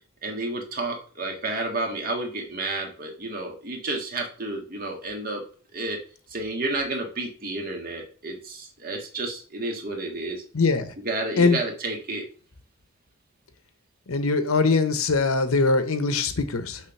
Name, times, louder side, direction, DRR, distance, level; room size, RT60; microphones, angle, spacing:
voice 1, 0.2-5.4 5.7-6.0 6.3-10.4 11.0-12.3, right 2 dB, 45° right, 1 dB, 1.7 m, -31 dB
voice 2, 10.5-10.9 11.4-11.6 14.1-16.8, left 3 dB, 85° left, 10 dB, 0.8 m, -22 dB
6.5 x 3.4 x 5.9 m, 0.40 s
head